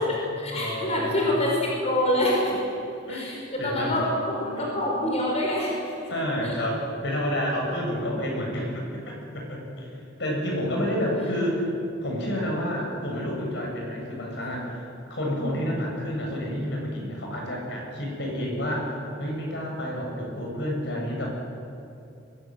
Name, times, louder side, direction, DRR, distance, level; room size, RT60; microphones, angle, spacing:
voice 1, 0.0-2.6 3.1-5.9 6.4-6.5 8.1-8.2 15.3-15.4, left 1 dB, 35° left, -2 dB, 5.4 m, -26 dB
voice 2, 0.5-1.3 3.1-4.0 4.6-4.7 6.1-11.7 12.0-21.3, equal, 65° left, -1 dB, 7.9 m, -30 dB
23.5 x 20.5 x 9.3 m, 2.7 s
head